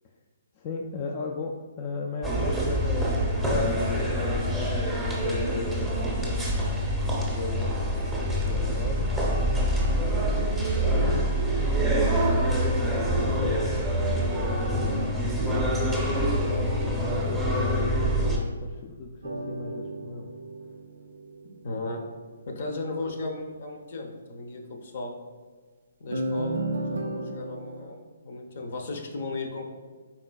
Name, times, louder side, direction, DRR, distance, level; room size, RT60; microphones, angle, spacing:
voice 1, 0.5-3.1 3.7-4.8 5.1-7.8 8.4-10.2 10.8-15.0 15.4-17.1 17.6-20.3, left 4 dB, 35° left, 0 dB, 0.3 m, -37 dB
sound 1, 2.2-18.4, equal, 5° right, 0.7 m, -26 dB
sound 2, 19.2-21.8 26.1-27.8, right 1 dB, 75° right, 0.4 m, -33 dB
voice 2, 21.6-22.0 22.5-25.1 26.0-28.0 28.2-29.6, left 2 dB, 60° left, 3 dB, 0.7 m, -35 dB
4.3 x 3.8 x 2.3 m, 1.5 s
hypercardioid pair, 140°, 0 cm